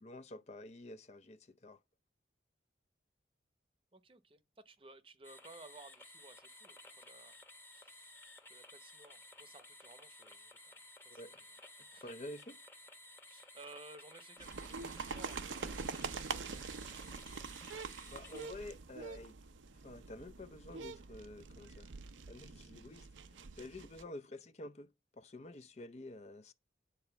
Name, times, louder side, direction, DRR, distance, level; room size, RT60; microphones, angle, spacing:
voice 1, 0.0-1.8 11.1-11.4 12.0-12.6 18.0-19.3 19.8-21.9 22.3-26.5, left 1 dB, 35° left, 0.5 m, -50 dB
voice 2, 3.9-7.4 7.7-8.2 8.5-11.2 11.9-12.1 13.3-17.1, right 2 dB, 30° right, 0.8 m, -58 dB
sound 1, 5.2-18.5, left 2 dB, 10° left, 1.0 m, -56 dB
sound 2, 14.4-24.0, right 5 dB, 90° right, 0.7 m, -45 dB
9.9 x 4.2 x 7.0 m
head